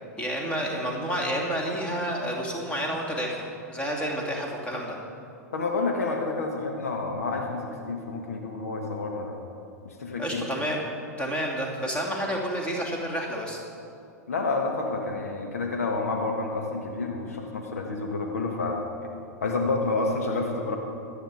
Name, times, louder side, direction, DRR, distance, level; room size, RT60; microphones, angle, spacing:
voice 1, 0.2-3.4 3.7-5.0 10.2-10.8 11.2-13.6, equal, 15° left, -1 dB, 2.8 m, -29 dB
voice 2, 5.5-9.4 9.8-10.5 14.3-18.8 19.4-20.8, left 3 dB, 70° left, 2 dB, 1.5 m, -29 dB
24.5 x 9.0 x 4.9 m, 2.5 s
figure-of-eight pair, 90°, 8 cm